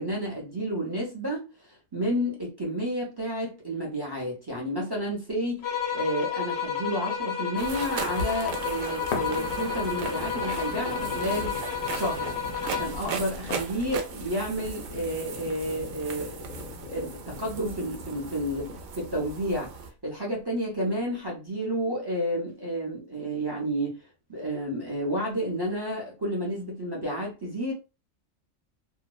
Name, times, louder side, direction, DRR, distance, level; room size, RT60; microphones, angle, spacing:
voice 1, 0.0-5.6 5.9-12.4 12.6-16.5 16.9-19.7 20.0-24.0 24.3-27.7, equal, 40° right, 0.3 m, -31 dB
sound 1, 5.6-13.1, left 7 dB, 60° left, 0.7 m, -31 dB
sound 2, 7.6-19.9, right 4 dB, 85° right, 1.0 m, -37 dB
sound 3, 9.1-19.1 19.7-19.8, left 6 dB, 85° left, 1.0 m, -41 dB
2.7 x 2.0 x 2.3 m
omnidirectional pair, 1.4 m